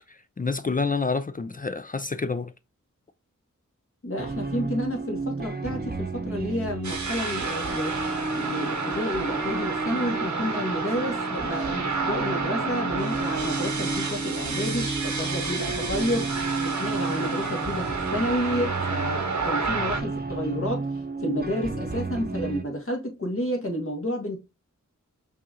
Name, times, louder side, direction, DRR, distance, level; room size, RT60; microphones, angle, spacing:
voice 1, 0.1-2.5, left 4 dB, 30° left, 0.4 m, -28 dB
voice 2, 4.0-8.0 8.3-16.3 16.6-20.9 21.2-24.4, left 1 dB, 45° left, 1.4 m, -30 dB
sound 1, 4.2-22.6, right 3 dB, 30° right, 0.7 m, -32 dB
sound 2, 6.8-20.0, right 4 dB, 70° right, 0.9 m, -30 dB
5.6 x 2.4 x 2.7 m
wide cardioid pair, 45°, 31 cm